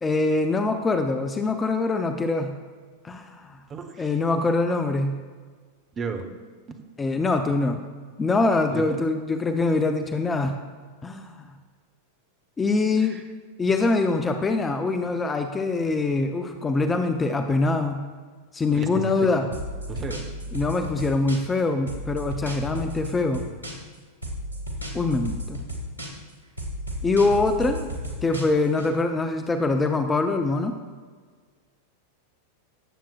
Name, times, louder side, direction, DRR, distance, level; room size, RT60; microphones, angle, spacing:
voice 1, 0.0-2.6 3.0-3.6 4.0-5.2 7.0-7.8 8.2-10.6 11.0-11.5 12.6-13.2 13.6-18.1 18.5-19.5 20.5-23.4 24.9-25.6 27.0-27.9 28.2-30.8, left 3 dB, 15° left, 6 dB, 0.6 m, -24 dB
voice 2, 3.7-4.1 5.9-6.2 6.7-6.8 8.7-9.0 13.0-13.2 18.7-19.5 19.9-20.2, right 5 dB, 25° right, 6 dB, 1.0 m, -34 dB
sound 1, 19.5-21.6 21.9-24.0 24.2-26.3 26.6-28.9, equal, 85° left, 1.5 m, -33 dB
17.0 x 7.4 x 2.4 m, 1.5 s
figure-of-eight pair, 90°, 0 cm